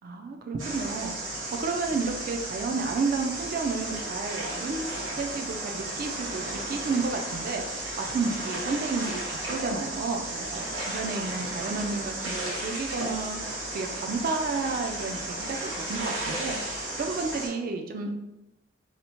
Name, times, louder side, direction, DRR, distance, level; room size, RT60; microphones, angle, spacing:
voice 1, 0.0-16.6 16.9-18.1, right 4 dB, 50° right, 4 dB, 0.3 m, -31 dB
sound 1, 0.6-17.5, right 1 dB, 90° right, 0.9 m, -34 dB
2.7 x 2.1 x 2.9 m, 0.95 s
head